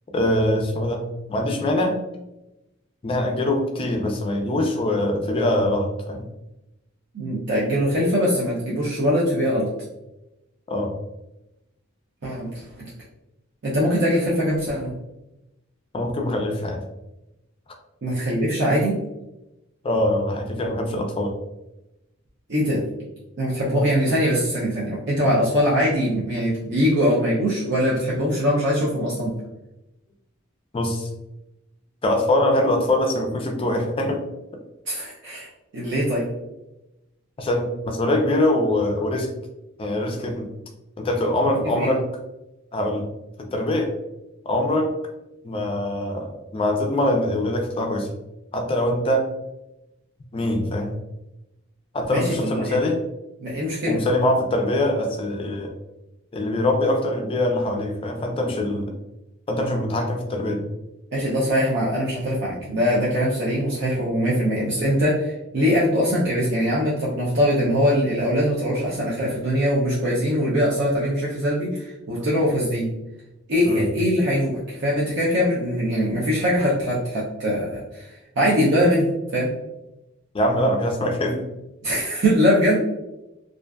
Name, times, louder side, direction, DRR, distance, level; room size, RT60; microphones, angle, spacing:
voice 1, 0.1-1.0 1.3-2.0 3.0-6.2 10.7-10.9 15.9-16.8 19.8-21.3 30.7-31.1 32.0-34.2 37.4-39.3 39.8-40.5 41.0-42.0 42.7-43.1 43.4-43.9 44.5-44.9 45.4-48.1 48.5-49.3 50.3-50.9 51.9-53.0 53.9-55.7 56.3-58.9 59.5-60.6 73.7-73.9 80.3-81.5, left 1 dB, 25° left, 2 dB, 0.4 m, -23 dB
voice 2, 7.1-9.7 12.2-12.6 13.6-14.9 18.0-18.9 22.5-22.8 23.4-29.3 34.9-35.5 35.7-36.3 41.7-42.0 52.1-52.8 53.4-54.0 61.1-72.9 73.5-78.1 78.4-79.1 79.3-79.5 81.8-82.8, equal, 60° right, -6 dB, 0.6 m, -22 dB
2.5 x 2.3 x 2.2 m, 0.93 s
head